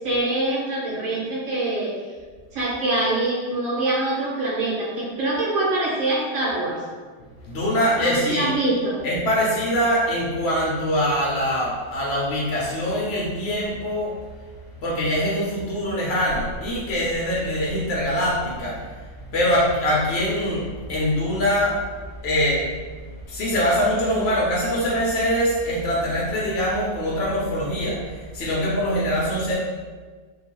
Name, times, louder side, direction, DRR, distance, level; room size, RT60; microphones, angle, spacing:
voice 1, 0.0-1.9 2.5-6.8 8.0-9.0, right 2 dB, 60° right, -5 dB, 1.3 m, -24 dB
voice 2, 7.4-8.5 9.0-14.1 14.8-18.9 19.3-21.8 22.2-22.6 23.3-29.5, equal, 75° left, -5 dB, 0.6 m, -23 dB
3.7 x 2.3 x 2.9 m, 1.5 s
omnidirectional pair, 1.8 m